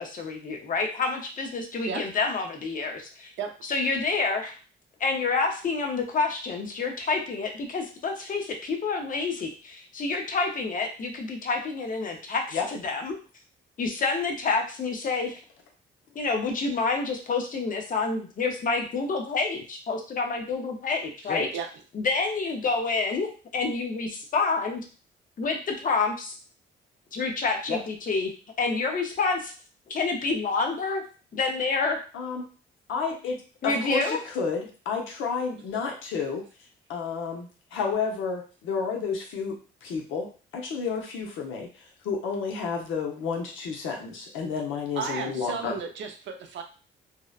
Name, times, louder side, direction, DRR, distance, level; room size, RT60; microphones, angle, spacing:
voice 1, 0.0-3.3 3.7-4.5 5.0-13.2 13.8-15.4 16.1-21.5 21.9-24.8 25.4-26.4 27.1-28.3 28.6-29.5 29.9-31.0 31.3-32.0 33.6-34.2, left 4 dB, 45° left, 3 dB, 0.6 m, -28 dB
voice 2, 21.2-21.7 45.0-46.6, right 6 dB, 70° right, 4 dB, 0.5 m, -34 dB
voice 3, 32.9-33.4 33.6-36.4 36.9-45.8, left 5 dB, 80° left, 1 dB, 0.7 m, -31 dB
2.7 x 2.1 x 2.4 m, 0.37 s
cardioid pair, 90°, 20 cm